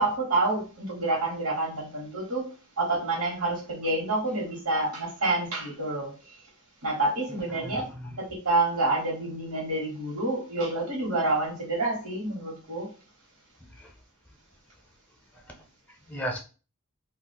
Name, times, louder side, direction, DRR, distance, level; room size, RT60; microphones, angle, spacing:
voice 1, 0.0-2.5 2.8-6.3 6.8-7.9 8.2-12.9, right 2 dB, 85° right, 1.2 m, -28 dB
voice 2, 7.3-8.2 13.7-13.9 15.3-16.4, equal, 5° left, 0.5 m, -38 dB
2.3 x 2.3 x 3.9 m
head